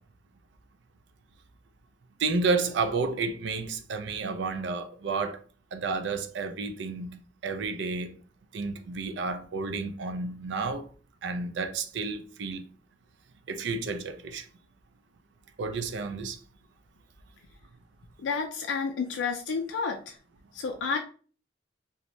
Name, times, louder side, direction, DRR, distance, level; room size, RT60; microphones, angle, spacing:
voice 1, 2.2-5.4 5.7-8.1 8.5-10.9 11.2-12.6 13.5-14.5 15.6-16.4, right 4 dB, 80° right, 0.4 m, -31 dB
voice 2, 18.2-20.2 20.5-21.0, left 5 dB, 90° left, 0.4 m, -30 dB
2.6 x 2.1 x 3.0 m
head